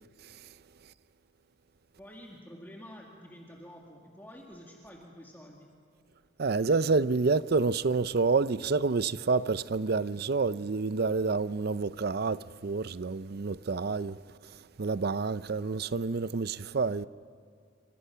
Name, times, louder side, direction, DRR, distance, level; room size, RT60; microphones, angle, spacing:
voice 1, 2.0-5.7, equal, 10° left, 1.9 m, -49 dB
voice 2, 6.4-14.2 14.8-17.1, right 4 dB, 50° right, 0.5 m, -28 dB
28.5 x 26.0 x 5.7 m
head